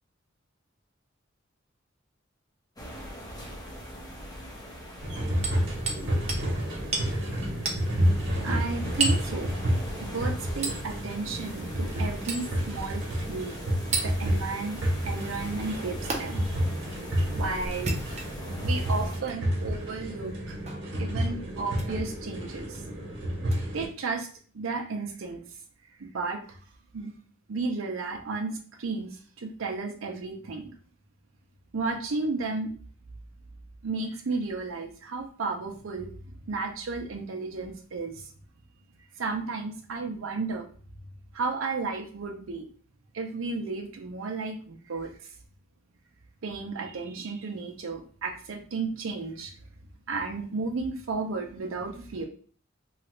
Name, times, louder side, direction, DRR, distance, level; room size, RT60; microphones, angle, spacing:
sound 1, 2.8-19.2, equal, 20° left, 0.6 m, -42 dB
sound 2, 5.0-23.9, equal, 65° right, 1.0 m, -30 dB
Hammer, 5.4-6.0 6.3-6.5 6.9-7.1 7.7-7.8 9.0-9.3 10.6-10.8 12.3-12.5 13.9-14.1 16.1-16.2 17.7-18.5 19.2-19.4 20.7-20.9 21.7-21.9 23.5-23.6, right 3 dB, 35° right, 0.6 m, -30 dB
voice 1, 8.4-9.5 10.0-13.6 14.0-16.5 17.3-18.0 18.6-20.6 21.0-22.8 23.7-24.3 24.5-25.4 26.0-26.4 26.9-27.1 27.5-30.7 31.7-32.7 33.8-36.1 36.5-38.3 39.2-40.7 41.3-42.6 43.1-45.1 46.4-49.5 50.1-52.3, right 4 dB, 85° right, 2 dB, 0.6 m, -33 dB
3.0 x 2.4 x 3.0 m, 0.43 s
head